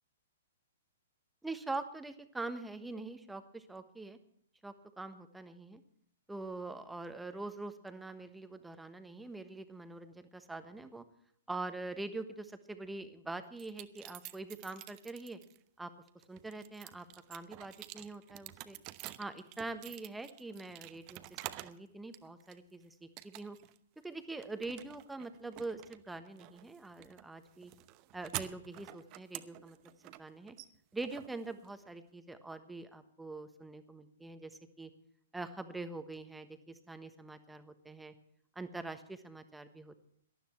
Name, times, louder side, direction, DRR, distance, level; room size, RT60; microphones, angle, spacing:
voice 1, 1.4-4.2 4.6-5.8 6.3-11.0 11.5-15.4 15.8-15.9 16.3-18.8 19.2-23.6 24.0-27.7 28.1-29.8 30.0-30.5 30.9-34.9 35.3-38.1 38.5-40.0, right 2 dB, 5° right, 9 dB, 1.3 m, -44 dB
sound 1, 13.6-15.6 16.1-21.8 22.1-22.8 23.2-23.8 24.0-32.0, right 17 dB, 35° right, 0.9 m, -48 dB
18.5 x 12.5 x 4.4 m, 0.69 s
figure-of-eight pair, 115°, 0 cm